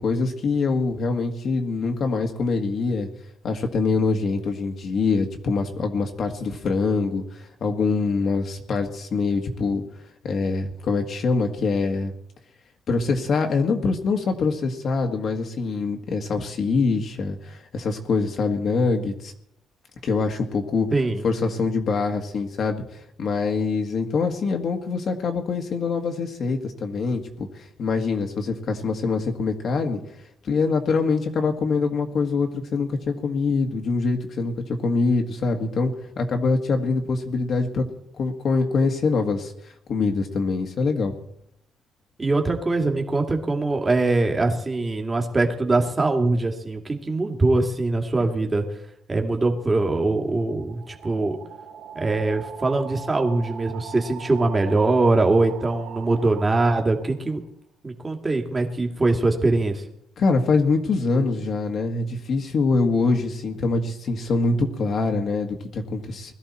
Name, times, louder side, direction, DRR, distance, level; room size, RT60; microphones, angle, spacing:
voice 1, 0.0-3.1 3.4-9.8 10.2-12.1 12.9-19.3 20.0-20.9 21.2-30.0 30.4-37.9 38.1-41.1 60.2-66.3, left 4 dB, 50° left, 3 dB, 1.8 m, -24 dB
voice 2, 20.9-21.2 42.2-48.7 49.1-51.4 51.9-57.4 57.8-59.8, right 2 dB, 20° right, 3 dB, 2.3 m, -22 dB
sound 1, 49.6-57.3, right 8 dB, 80° right, 2.0 m, -41 dB
20.5 x 13.5 x 4.3 m, 0.74 s
cardioid pair, 120°, 0 cm